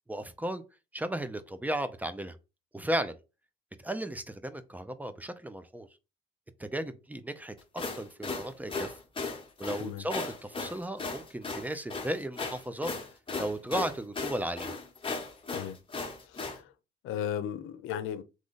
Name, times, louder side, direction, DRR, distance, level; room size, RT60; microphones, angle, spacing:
voice 1, 0.1-0.6 0.9-2.4 2.7-3.2 3.8-5.9 6.6-7.5 7.9-8.9 9.6-12.9 13.4-14.7, right 1 dB, 10° right, 0.6 m, -35 dB
sound 1, 7.6-16.6, left 3 dB, 25° left, 1.2 m, -36 dB
voice 2, 16.3-16.7 17.0-18.2, left 9 dB, 90° left, 0.6 m, -35 dB
3.8 x 3.1 x 3.9 m
cardioid pair, 90°, 20 cm